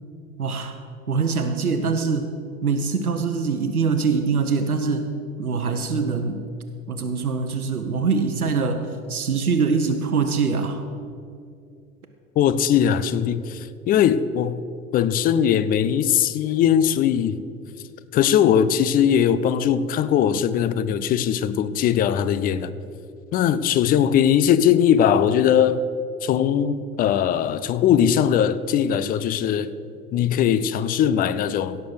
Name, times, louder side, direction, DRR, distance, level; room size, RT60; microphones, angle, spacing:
voice 1, 0.4-0.8 1.1-2.3 2.6-5.1 5.4-6.5 6.9-10.9, right 5 dB, 85° right, 0.9 m, -23 dB
voice 2, 12.4-14.6 14.9-17.4 18.1-22.7 23.3-25.8 26.2-29.7 30.1-31.8, left 9 dB, 20° left, 0.4 m, -20 dB
16.5 x 6.7 x 6.1 m
figure-of-eight pair, 80°, 43 cm